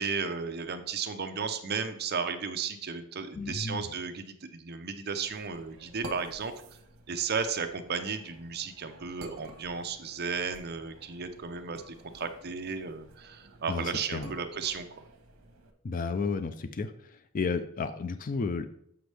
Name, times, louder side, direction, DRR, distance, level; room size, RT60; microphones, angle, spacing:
voice 1, 0.0-6.5 7.1-14.9, right 5 dB, 50° right, 7 dB, 0.6 m, -34 dB
voice 2, 3.4-3.8 13.7-14.3 15.8-18.7, left 4 dB, 40° left, 10 dB, 0.4 m, -32 dB
sound 1, 5.3-15.7, right 2 dB, 85° right, 1.0 m, -50 dB
7.8 x 5.3 x 3.4 m, 0.69 s
head